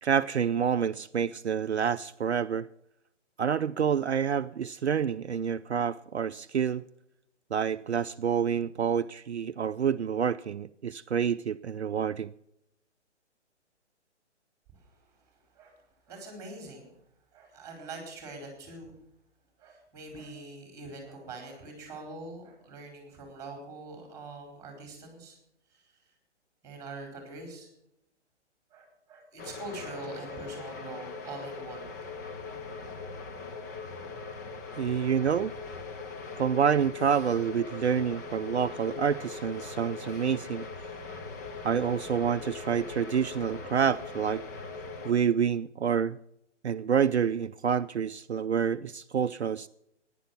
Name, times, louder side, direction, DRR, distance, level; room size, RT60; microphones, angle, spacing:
voice 1, 0.0-2.7 3.4-6.8 7.5-12.3 34.8-35.5 36.4-40.7 41.6-44.4 45.0-46.2 46.6-49.7, right 7 dB, 65° right, 0.5 m, -28 dB
voice 2, 16.1-16.9 17.3-18.9 19.6-25.4 25.7-25.9 26.6-27.7 28.7-32.2, right 2 dB, 10° right, 4.3 m, -44 dB
sound 1, 29.4-45.1, left 4 dB, 15° left, 0.6 m, -41 dB
15.0 x 10.5 x 5.7 m
figure-of-eight pair, 130°, 36 cm